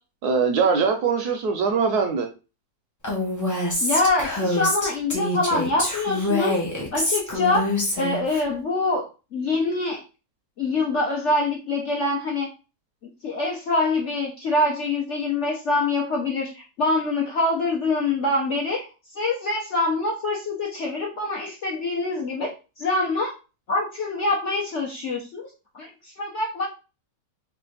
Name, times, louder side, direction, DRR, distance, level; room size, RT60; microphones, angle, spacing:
voice 1, 0.2-2.3, right 5 dB, 70° right, 5 dB, 1.0 m, -22 dB
Female speech woman speaking, 3.0-8.4, left 1 dB, 25° left, 0.4 m, -25 dB
voice 2, 3.8-6.6 6.9-9.0 9.3-10.0 10.6-12.5 13.2-18.9 19.1-23.3 23.7-25.5 25.7-26.7, left 2 dB, 55° left, -2 dB, 0.8 m, -25 dB
3.3 x 2.4 x 3.8 m, 0.31 s
omnidirectional pair, 2.0 m